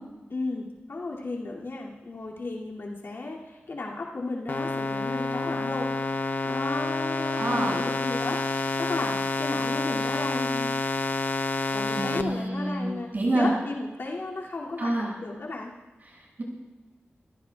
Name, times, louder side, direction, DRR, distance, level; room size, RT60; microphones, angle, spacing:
voice 1, 0.3-5.9 6.4-11.0 11.7-15.7, left 2 dB, 65° left, -3 dB, 2.5 m, -34 dB
sound 1, 4.5-12.2, left 3 dB, 50° left, 0.8 m, -28 dB
voice 2, 7.4-7.7 11.9-13.5 14.8-15.1 16.1-16.4, right 1 dB, 45° right, -3 dB, 6.5 m, -27 dB
27.5 x 16.5 x 2.4 m, 1.2 s
wide cardioid pair, 115°, 4 cm